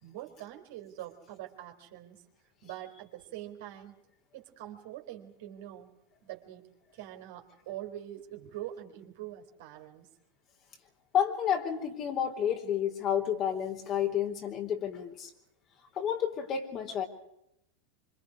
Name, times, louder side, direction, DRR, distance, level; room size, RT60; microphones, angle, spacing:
voice 1, 0.0-2.2 2.6-4.0 4.3-5.9 6.2-10.1, right 13 dB, 65° right, 4 dB, 4.2 m, -44 dB
voice 2, 11.1-15.3 15.9-17.0, left 9 dB, 40° left, 4 dB, 4.1 m, -30 dB
26.0 x 25.5 x 5.0 m, 0.78 s
hypercardioid pair, 90°, 0 cm